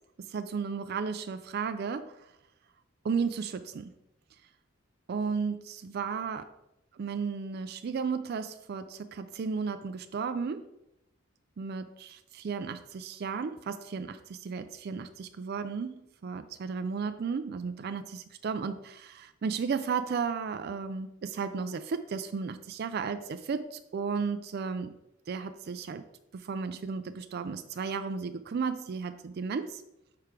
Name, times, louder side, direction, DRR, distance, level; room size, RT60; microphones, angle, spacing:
voice 1, 0.2-2.3 3.0-3.9 5.1-6.4 6.9-10.7 11.6-15.9 16.2-24.9 25.3-26.0 26.3-29.8, right 5 dB, 55° right, 9 dB, 0.4 m, -34 dB
6.8 x 4.7 x 4.5 m, 0.87 s
head